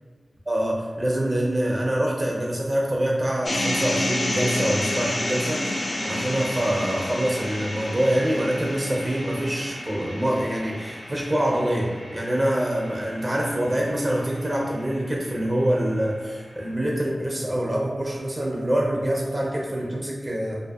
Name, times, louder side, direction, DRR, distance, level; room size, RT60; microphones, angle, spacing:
voice 1, 0.5-20.6, right 1 dB, 30° right, -2 dB, 0.4 m, -25 dB
sound 1, 3.4-15.6, left 1 dB, 60° left, 0.3 m, -31 dB
2.6 x 2.3 x 2.3 m, 1.4 s
wide cardioid pair, 60°, 0 cm